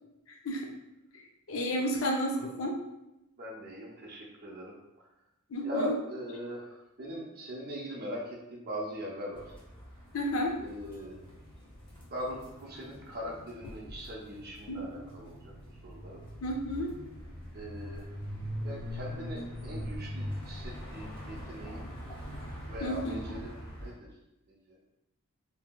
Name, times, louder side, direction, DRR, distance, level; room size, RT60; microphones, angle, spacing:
voice 1, 0.3-0.7 1.5-2.8 5.5-5.9 10.1-10.5 14.7-14.8 16.4-16.9 22.8-23.4, equal, 65° left, 1 dB, 0.5 m, -31 dB
voice 2, 3.4-4.8 5.6-9.5 10.6-11.2 12.0-15.5 15.8-16.2 17.5-18.1 18.6-21.9 22.7-24.1 24.5-24.8, equal, 45° right, -2 dB, 0.6 m, -41 dB
sound 1, 9.3-23.9, equal, 25° left, 0.7 m, -42 dB
2.9 x 2.7 x 2.2 m, 0.90 s
head